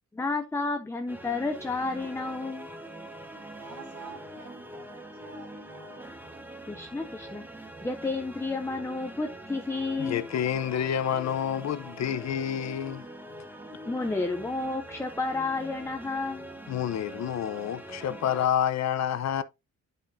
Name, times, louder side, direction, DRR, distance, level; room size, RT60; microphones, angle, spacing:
voice 1, 0.1-2.7 6.7-7.4 7.8-10.2 13.9-16.5, left 3 dB, 10° left, 0.5 m, -31 dB
sound 1, 1.1-18.5, right 1 dB, 5° right, 1.0 m, -44 dB
voice 2, 3.5-6.5, right 6 dB, 90° right, 3.0 m, -49 dB
voice 3, 10.0-13.1 16.7-19.4, left 9 dB, 65° left, 0.7 m, -28 dB
11.5 x 5.3 x 2.6 m
wide cardioid pair, 180°, 29 cm